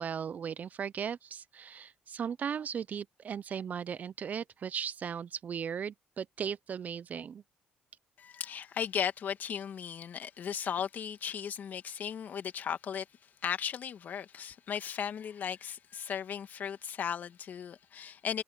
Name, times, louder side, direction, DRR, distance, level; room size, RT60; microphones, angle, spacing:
voice 1, 0.0-7.4, right 7 dB, 50° right, 0.7 m, -37 dB
voice 2, 8.2-13.1 13.4-18.4, left 8 dB, 60° left, 2.2 m, -36 dB
supercardioid pair, 65°, 3 cm